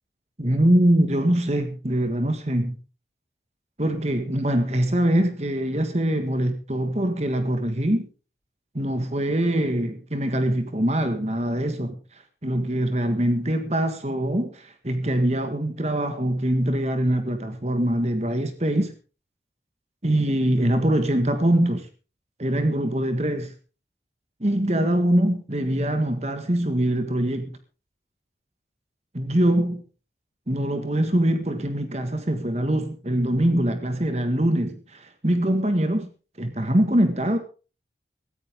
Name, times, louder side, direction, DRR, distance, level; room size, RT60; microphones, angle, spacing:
voice 1, 0.4-2.8 3.8-8.1 8.7-18.9 20.0-21.9 22.4-23.5 24.4-27.6 29.1-29.8 30.5-36.1 36.4-37.4, right 1 dB, 40° right, 1.8 m, -23 dB
17.5 x 14.5 x 3.7 m
head